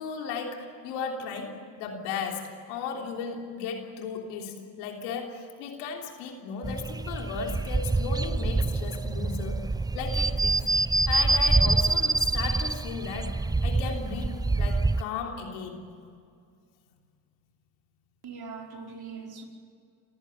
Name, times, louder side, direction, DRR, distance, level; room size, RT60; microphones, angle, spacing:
voice 1, 0.0-9.6 9.9-10.6 11.1-15.9, left 5 dB, 90° left, 2 dB, 3.4 m, -36 dB
sound 1, 6.6-15.0, right 3 dB, 10° right, 0.5 m, -26 dB
voice 2, 18.2-19.4, right 5 dB, 50° right, 1 dB, 5.0 m, -41 dB
27.5 x 15.0 x 9.1 m, 2.3 s
supercardioid pair, 65°, 48 cm